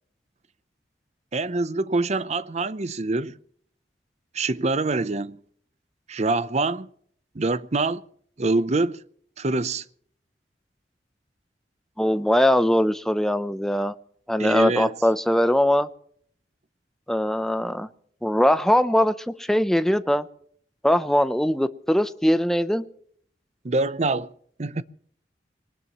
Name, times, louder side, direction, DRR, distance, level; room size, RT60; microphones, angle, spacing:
voice 1, 1.3-3.4 4.3-5.4 6.1-6.9 7.3-8.0 8.4-9.0 9.4-9.8 14.4-15.0 23.6-24.3 24.6-24.8, right 3 dB, 40° right, 0.6 m, -25 dB
voice 2, 12.0-13.9 14.3-15.9 17.1-17.9 18.2-20.3 20.8-22.8, left 1 dB, 5° left, 0.6 m, -21 dB
22.0 x 19.5 x 3.0 m
head